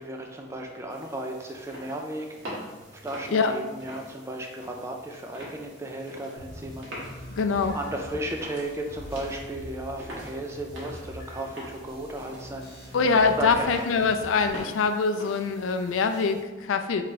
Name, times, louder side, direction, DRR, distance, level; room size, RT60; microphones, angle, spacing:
voice 1, 0.0-2.5 2.9-6.9 7.7-12.7 13.4-13.7, right 1 dB, 15° right, 2 dB, 0.3 m, -35 dB
sound 1, 0.9-16.4, equal, 80° right, 1.4 m, -45 dB
sound 2, 6.4-14.4, equal, 50° left, 1.1 m, -43 dB
voice 2, 7.3-7.8 12.9-17.0, left 4 dB, 90° left, 7 dB, 0.4 m, -24 dB
3.3 x 3.2 x 4.0 m, 1.2 s
head